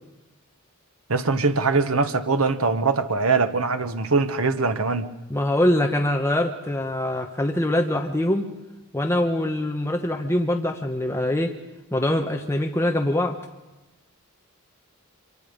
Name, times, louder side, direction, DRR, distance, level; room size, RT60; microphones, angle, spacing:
voice 1, 1.1-5.1, right 4 dB, 70° right, 1.4 m, -22 dB
voice 2, 5.3-8.5 8.9-11.5 11.9-13.4, left 1 dB, 10° left, 1.2 m, -23 dB
25.5 x 24.0 x 5.3 m
head